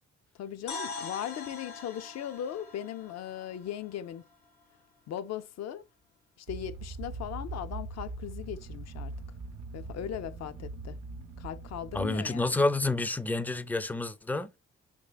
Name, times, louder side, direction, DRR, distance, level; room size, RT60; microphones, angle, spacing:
voice 1, 0.4-4.2 5.1-5.8 6.4-9.1 9.7-11.0 11.4-12.6, left 10 dB, 60° left, 0.5 m, -38 dB
sound 1, 0.7-4.6, left 3 dB, 85° left, 0.9 m, -43 dB
sound 2, 6.5-12.1, right 3 dB, 85° right, 0.6 m, -41 dB
voice 2, 11.9-14.5, left 2 dB, 5° left, 0.4 m, -29 dB
3.6 x 3.2 x 2.3 m
supercardioid pair, 60°, 29 cm